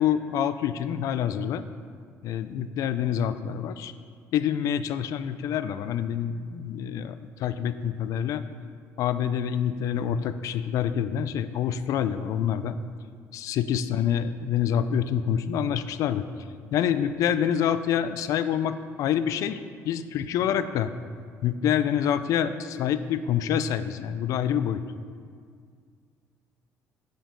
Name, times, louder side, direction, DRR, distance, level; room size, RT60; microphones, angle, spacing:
voice 1, 0.0-1.6 2.2-3.9 4.3-8.4 9.0-12.8 13.3-16.3 16.7-19.6 19.8-20.9 21.4-24.8, left 9 dB, 70° left, 12 dB, 0.4 m, -26 dB
9.8 x 5.1 x 3.7 m, 2.1 s
cardioid pair, 115°, 6 cm